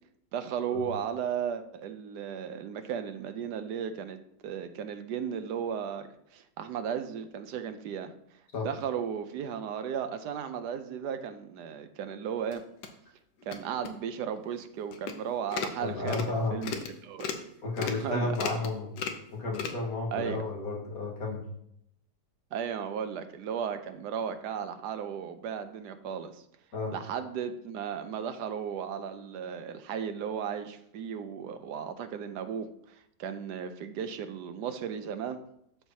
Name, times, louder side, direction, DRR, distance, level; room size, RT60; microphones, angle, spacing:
voice 1, 0.3-8.1 8.6-12.6 13.4-16.2 16.5-17.3 17.8-18.3 20.1-20.4 22.5-26.4 26.9-35.4, right 8 dB, 80° right, 9 dB, 1.3 m, -35 dB
sound 1, 12.5-12.9 13.4-13.6 13.8-13.9 14.4-14.5 14.9-15.2 15.5-15.8 16.1-16.3 16.6-16.9 17.2-17.4 17.8-18.0 18.3-18.7 19.0-19.2 19.5-19.7, left 6 dB, 80° left, 1.4 m, -35 dB
voice 2, 15.8-16.6 17.6-18.9 19.3-21.5 26.7-26.9, left 3 dB, 60° left, -1 dB, 2.0 m, -32 dB
12.5 x 4.7 x 2.8 m, 0.75 s
omnidirectional pair, 1.8 m